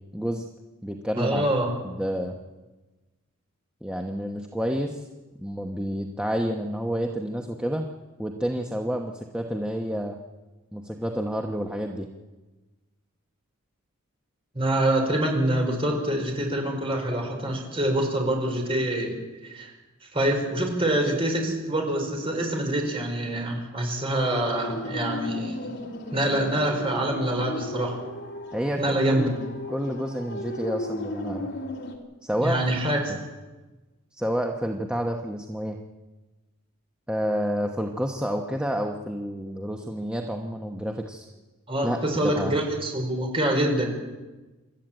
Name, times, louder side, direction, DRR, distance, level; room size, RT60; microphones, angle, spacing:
voice 1, 0.1-0.4 0.8-1.5 1.8-2.3 3.8-5.1 5.4-7.9 8.2-10.2 10.7-12.1 28.5-29.3 29.7-31.5 32.2-32.8 33.1-33.2 34.1-35.8 37.1-41.3 41.8-42.6, equal, 5° right, 2 dB, 1.1 m, -29 dB
voice 2, 1.2-1.7 14.5-19.1 19.4-19.7 20.1-25.8 26.1-28.0 28.8-29.3 32.4-33.0 41.7-43.8, right 1 dB, 25° right, 2 dB, 5.0 m, -25 dB
sound 1, 24.0-32.0, left 1 dB, 50° left, 2.8 m, -35 dB
27.0 x 13.0 x 9.0 m, 1.2 s
head